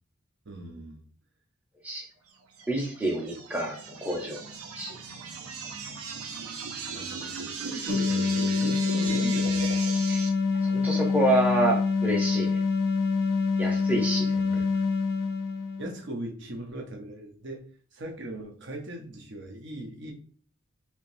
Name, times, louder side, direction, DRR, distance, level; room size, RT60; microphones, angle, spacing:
voice 1, 0.4-1.0 6.4-6.5 6.9-9.7 14.3-14.8 15.8-17.7 17.9-20.1, right 1 dB, 55° right, 2 dB, 0.8 m, -39 dB
sound 1, 2.6-10.3, right 5 dB, 90° right, 0.6 m, -37 dB
voice 2, 2.7-4.4 4.8-4.9 10.1-10.3 10.6-12.6 13.6-14.6, right 1 dB, 5° right, -2 dB, 0.7 m, -28 dB
sound 2, 7.9-16.0, left 4 dB, 45° left, 0.3 m, -26 dB
3.5 x 2.8 x 2.6 m, 0.43 s
head